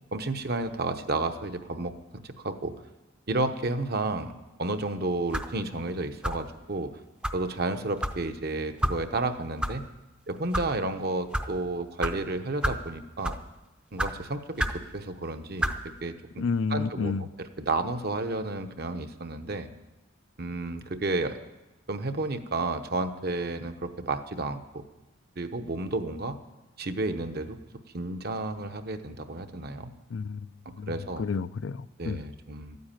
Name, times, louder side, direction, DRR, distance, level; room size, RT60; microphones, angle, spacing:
voice 1, 0.1-2.7 3.3-4.3 4.6-6.9 7.3-9.8 10.3-13.4 13.9-15.7 16.0-16.4 16.7-19.7 20.4-21.4 21.9-24.8 25.4-26.4 26.8-27.6 27.9-29.9 30.6-31.2 32.0-32.8, right 2 dB, 50° right, 8 dB, 0.9 m, -31 dB
sound 1, 5.3-5.6 6.2-6.5 7.2-7.4 8.0-8.2 8.8-9.0 9.6-9.7 10.4-10.7 11.3-11.5 12.0-12.1 12.6-12.8 13.2-13.5 14.0-14.1 14.6-14.8 15.6-15.8, equal, 5° right, 0.6 m, -29 dB
voice 2, 16.4-17.2 30.1-30.5 30.8-32.2, left 5 dB, 65° left, 15 dB, 0.4 m, -30 dB
12.5 x 9.5 x 8.9 m, 1.0 s
head